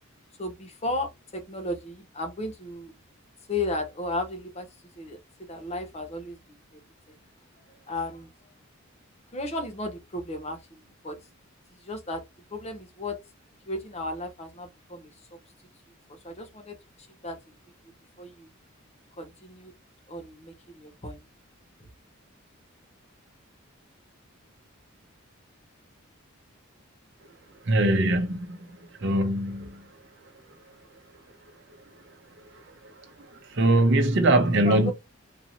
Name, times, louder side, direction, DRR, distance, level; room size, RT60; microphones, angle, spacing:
voice 1, 0.4-2.9 3.5-4.7 5.0-5.2 5.5-6.4 6.7-6.8 7.1-7.2 7.9-8.3 9.3-11.2 11.8-12.2 12.5-13.2 13.7-15.4 16.1-17.5 18.2-18.5 19.2-19.7 20.1-21.2 34.6-34.9, left 2 dB, 30° left, 0.7 m, -34 dB
voice 2, 27.7-28.6 29.0-29.8 33.5-34.9, right 1 dB, 55° right, 0.8 m, -22 dB
4.1 x 2.8 x 2.6 m
head